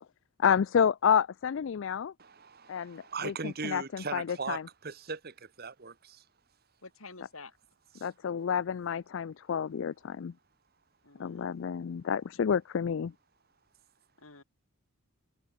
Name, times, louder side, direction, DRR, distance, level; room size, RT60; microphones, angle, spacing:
voice 1, 0.4-2.1 2.7-4.6 8.0-10.3 11.2-13.1, left 7 dB, 60° left, 0.4 m, -29 dB
voice 2, 2.2-6.2 8.0-8.1, right 4 dB, 45° right, 1.3 m, -39 dB
voice 3, 6.8-7.6 11.0-11.5 14.2-14.4, left 3 dB, 75° left, 4.9 m, -49 dB
head